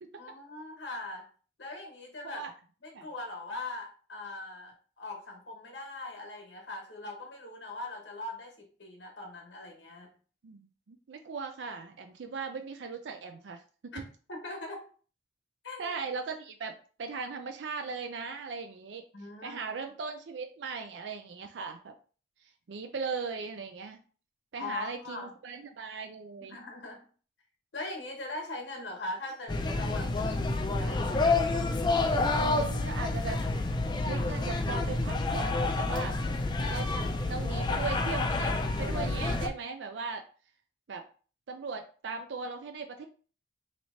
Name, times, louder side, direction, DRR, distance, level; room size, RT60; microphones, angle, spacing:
voice 1, 0.2-1.3 1.6-2.4 2.8-10.1 13.9-14.0 14.3-14.8 15.6-15.9 19.1-19.6 24.6-25.3 26.5-27.0 27.7-31.5, left 2 dB, 80° left, 2 dB, 1.1 m, -41 dB
voice 2, 10.4-14.0 15.8-19.0 19.4-21.9 22.7-24.0 24.5-26.6 32.4-33.4 34.0-36.2 36.7-36.9 37.2-40.3 40.9-41.0 41.5-43.0, right 4 dB, 80° right, 6 dB, 0.4 m, -38 dB
sound 1, 29.5-39.5, left 2 dB, 25° left, 0.4 m, -29 dB
3.0 x 2.8 x 4.2 m, 0.39 s
head